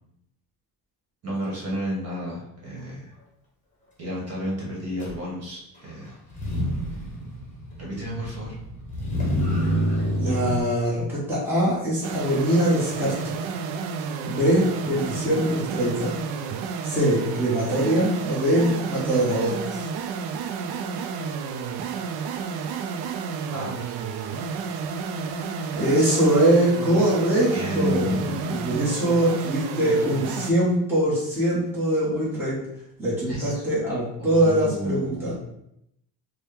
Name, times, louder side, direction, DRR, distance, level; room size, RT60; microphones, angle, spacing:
voice 1, 1.2-3.1 4.0-6.1 7.8-8.6 23.5-23.8 27.5-28.7 33.3-33.6 34.2-35.3, equal, 40° right, -4 dB, 1.4 m, -31 dB
Motor vehicle (road), 5.0-5.1 6.3-10.6, equal, 20° left, 1.2 m, -27 dB
voice 2, 10.2-13.4 14.2-16.2 16.8-19.9 25.3-32.6 33.0-35.3, right 1 dB, 5° right, -9 dB, 1.2 m, -23 dB
sound 1, 12.0-30.5, right 5 dB, 70° right, 0.5 m, -31 dB
4.3 x 2.3 x 3.4 m, 0.78 s
cardioid pair, 135°, 40 cm